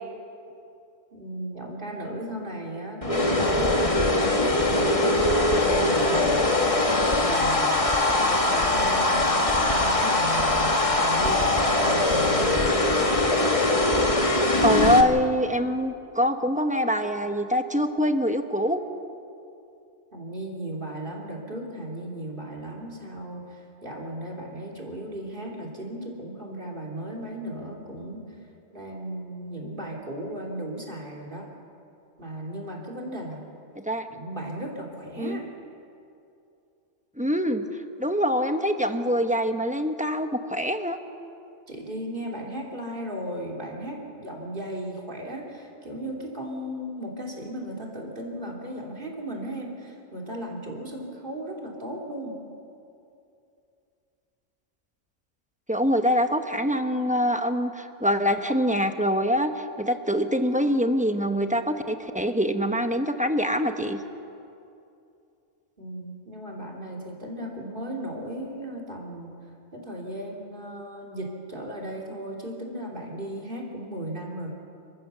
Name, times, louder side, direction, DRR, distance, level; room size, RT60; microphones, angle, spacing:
voice 1, 1.1-12.6 20.1-28.3 28.7-31.5 32.2-33.4 34.1-35.4 41.7-52.4 65.8-69.3 69.7-74.5, right 1 dB, 40° right, 1 dB, 3.3 m, -36 dB
sound 1, 3.0-15.0, left 2 dB, 25° left, 1.5 m, -22 dB
voice 2, 14.4-18.8 33.8-34.1 35.2-35.4 37.2-37.6 38.0-41.0 55.7-64.0, equal, 5° right, 6 dB, 0.8 m, -24 dB
28.5 x 15.5 x 6.8 m, 2.6 s
omnidirectional pair, 1.4 m